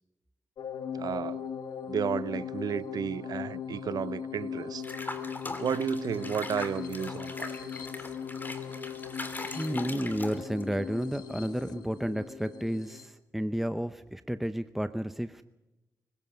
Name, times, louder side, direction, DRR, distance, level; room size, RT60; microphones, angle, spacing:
sound 1, 0.6-13.1, left 7 dB, 90° left, 1.2 m, -39 dB
voice 1, 0.9-1.4 1.9-4.8 5.6-7.6, right 8 dB, 70° right, 0.7 m, -32 dB
Water / Bathtub (filling or washing), 4.8-10.7, left 2 dB, 30° left, 2.8 m, -41 dB
voice 2, 9.5-15.4, equal, 5° right, 0.7 m, -32 dB
25.5 x 16.5 x 6.8 m
cardioid pair, 85°, 7 cm